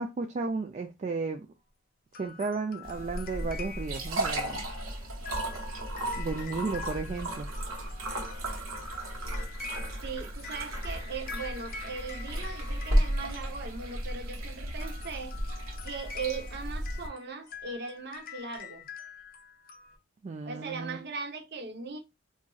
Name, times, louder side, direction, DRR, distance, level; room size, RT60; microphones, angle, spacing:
voice 1, 0.0-1.5 2.2-4.6 6.1-7.5 20.2-21.0, right 4 dB, 35° right, 0.3 m, -34 dB
sound 1, 2.1-14.1 14.7-20.0, left 6 dB, 45° left, 0.6 m, -46 dB
sound 2, 2.8-17.1, right 1 dB, 85° right, 1.2 m, -34 dB
voice 2, 10.0-15.5 15.8-18.9 20.4-22.0, right 4 dB, 50° right, 0.7 m, -39 dB
3.9 x 2.6 x 2.3 m
head